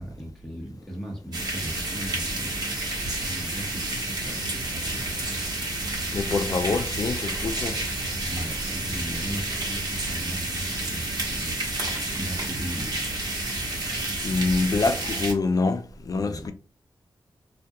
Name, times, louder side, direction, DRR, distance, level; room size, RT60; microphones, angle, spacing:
voice 1, 0.0-2.9 3.2-5.0 8.2-12.9 16.1-16.5, equal, ahead, 0.8 m, -38 dB
sound 1, 1.3-15.3, right 2 dB, 55° right, 1.0 m, -30 dB
voice 2, 6.1-7.8 14.2-16.5, left 3 dB, 50° left, 0.4 m, -25 dB
2.3 x 2.1 x 2.7 m
cardioid pair, 70°, 8 cm